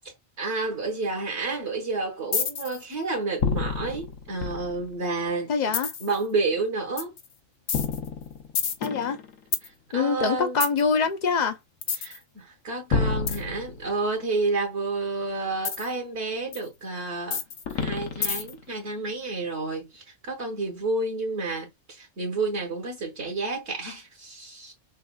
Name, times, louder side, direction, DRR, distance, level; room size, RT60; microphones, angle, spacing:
voice 1, 0.4-5.5 6.0-7.1 9.6-10.6 11.9-17.4 17.7-24.7, right 3 dB, 60° right, 1.5 m, -30 dB
sound 1, 2.3-2.8 3.4-5.0 5.7-6.2 7.0-7.2 7.7-9.7 10.6-10.8 11.8-12.2 12.9-14.1 15.7-15.9 16.5-16.6 17.3-18.7, left 6 dB, 85° left, 1.2 m, -28 dB
voice 2, 5.5-5.9 8.8-9.2 9.9-11.6, left 5 dB, 50° left, 0.6 m, -24 dB
6.4 x 2.4 x 2.3 m
omnidirectional pair, 1.3 m